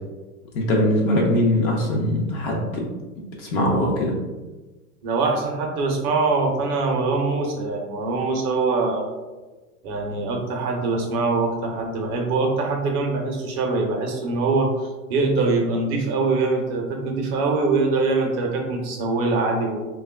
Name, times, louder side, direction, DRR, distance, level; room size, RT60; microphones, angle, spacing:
voice 1, 0.5-2.9 3.4-4.1, left 1 dB, 35° left, -1 dB, 0.5 m, -21 dB
voice 2, 5.0-9.1 9.8-14.7 15.1-19.9, right 3 dB, 40° right, 1 dB, 0.6 m, -23 dB
3.3 x 2.2 x 2.2 m, 1.2 s
hypercardioid pair, 110°, 46 cm